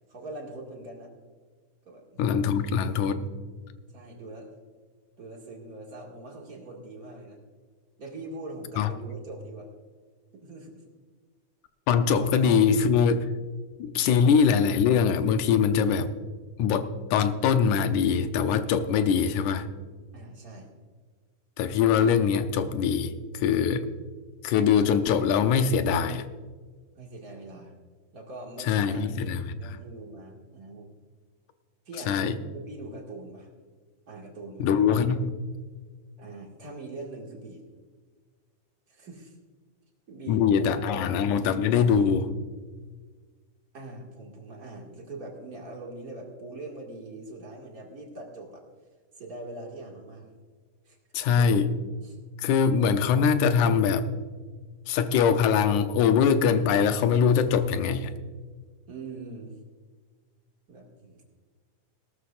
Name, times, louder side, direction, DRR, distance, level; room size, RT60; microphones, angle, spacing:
voice 1, 0.1-1.1 1.8-2.6 3.9-4.5 5.2-7.4 8.0-9.7 10.3-10.7 12.5-12.7 13.9-14.4 20.1-20.7 26.9-27.7 28.1-29.1 29.6-30.9 31.9-33.5 34.1-34.7 36.2-37.6 38.9-39.3 40.1-41.1 43.7-48.6 49.2-50.3 50.9-51.0 51.3-51.6 52.0-52.2 58.9-59.6 60.7-61.2, right 2 dB, 30° right, -1 dB, 2.1 m, -42 dB
voice 2, 2.2-3.3 8.8-8.9 11.9-13.3 13.8-16.1 16.6-19.7 21.6-23.9 24.4-26.3 28.7-29.8 32.1-32.4 34.6-35.4 40.3-42.3 51.1-51.7 52.4-54.1 54.9-58.1, left 6 dB, 80° left, 9 dB, 2.2 m, -23 dB
19.0 x 12.5 x 2.5 m, 1.5 s
omnidirectional pair, 3.5 m